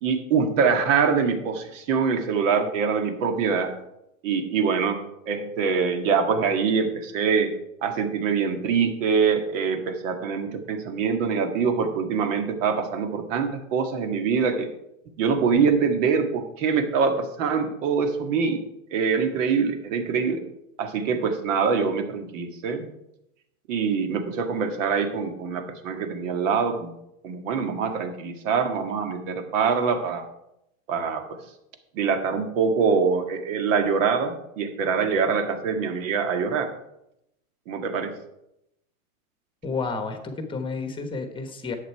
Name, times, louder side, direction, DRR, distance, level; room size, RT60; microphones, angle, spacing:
voice 1, 0.0-3.7 4.2-5.0 5.3-7.5 7.8-14.7 15.2-18.6 18.9-20.4 20.8-22.9 23.7-26.9 27.2-30.3 30.9-31.2 31.9-36.7 37.7-38.1, right 5 dB, 60° right, 6 dB, 1.9 m, -24 dB
voice 2, 39.6-41.8, left 4 dB, 10° left, 7 dB, 1.2 m, -31 dB
11.0 x 8.4 x 4.6 m, 0.82 s
supercardioid pair, 145°, 42 cm